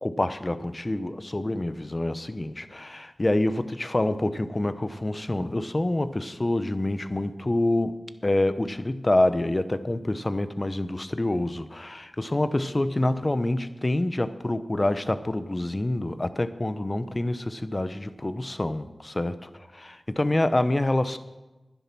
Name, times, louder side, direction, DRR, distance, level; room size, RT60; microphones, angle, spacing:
voice 1, 0.0-7.9 8.2-19.4 20.1-21.2, left 1 dB, 35° left, 12 dB, 0.9 m, -26 dB
11.5 x 10.5 x 6.1 m, 1.1 s
cardioid pair, 45°, 0 cm